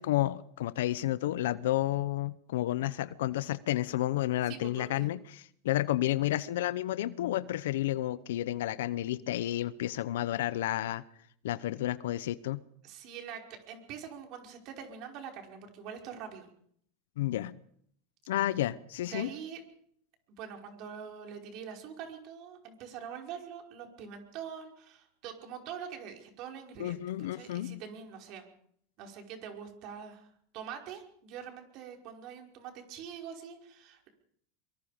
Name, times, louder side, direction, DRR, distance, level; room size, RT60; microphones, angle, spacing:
voice 1, 0.0-11.0 11.4-12.6 17.2-17.6 18.3-19.3 26.8-27.8, left 14 dB, 80° left, 16 dB, 0.8 m, -31 dB
voice 2, 4.5-5.1 12.8-13.4 13.7-16.5 19.1-19.6 20.4-28.5 29.0-30.3 30.5-34.1, right 7 dB, 55° right, 3 dB, 5.4 m, -44 dB
24.0 x 23.0 x 5.2 m, 0.66 s
supercardioid pair, 115°, 0 cm